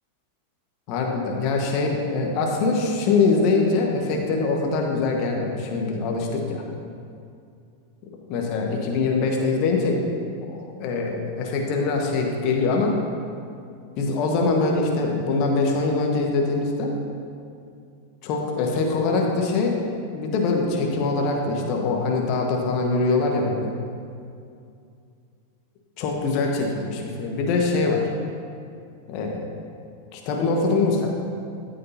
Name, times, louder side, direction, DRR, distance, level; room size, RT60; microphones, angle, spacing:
voice 1, 0.9-6.6 8.3-10.0 10.4-12.9 14.0-16.9 18.2-19.8 20.1-23.7 26.0-28.1 29.1-29.6 30.1-31.1, left 3 dB, 40° left, 1 dB, 1.4 m, -23 dB
13.5 x 8.5 x 2.8 m, 2.4 s
figure-of-eight pair, 90°, 0 cm